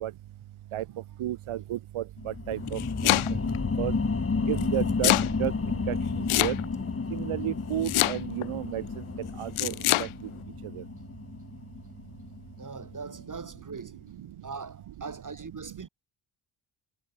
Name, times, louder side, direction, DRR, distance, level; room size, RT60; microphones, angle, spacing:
voice 1, 1.2-3.1 3.8-3.9 4.5-5.1 5.4-5.5 5.9-6.0 6.4-6.5 7.1-8.8 9.4-9.7 10.0-10.1 10.8-10.9, right 13 dB, 90° right, 1.5 m, -31 dB
sound 1, 2.2-13.3 13.8-13.9, left 4 dB, 30° left, 2.1 m, -32 dB
Domestic sounds home sounds, 2.5-3.6 4.6-5.3 6.3-6.9 7.8-8.5 9.6-10.1, left 15 dB, 85° left, 0.8 m, -25 dB
voice 2, 12.6-14.0 14.4-15.9, right 4 dB, 40° right, 6.3 m, -41 dB
cardioid pair, 70°, 48 cm